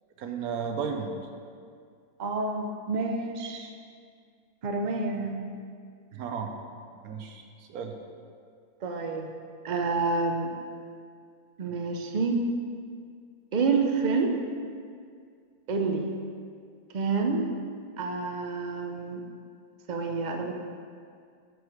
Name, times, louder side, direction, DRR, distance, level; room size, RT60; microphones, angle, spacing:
voice 1, 0.2-1.2 6.1-6.5 7.0-7.4 7.7-7.9, right 6 dB, 75° right, 4 dB, 1.2 m, -33 dB
voice 2, 2.2-3.7 4.6-5.4 8.8-9.3 9.6-10.5 11.6-12.4 13.5-14.3 15.7-16.2 16.9-17.5 18.0-19.2 19.9-20.5, right 4 dB, 50° right, 3 dB, 0.5 m, -28 dB
9.2 x 4.8 x 4.8 m, 2.2 s
omnidirectional pair, 1.6 m